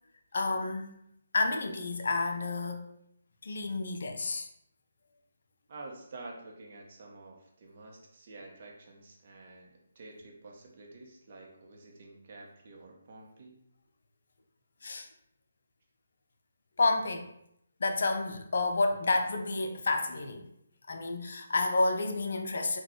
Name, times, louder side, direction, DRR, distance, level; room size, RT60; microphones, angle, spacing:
voice 1, 0.3-0.9 1.3-2.9 3.4-4.5 14.8-15.1 16.8-17.3 17.8-20.5 20.9-22.8, left 3 dB, 60° left, 0.4 m, -30 dB
voice 2, 5.7-13.6, right 2 dB, 45° right, 0.7 m, -49 dB
3.8 x 2.2 x 3.0 m
figure-of-eight pair, 145°, 0 cm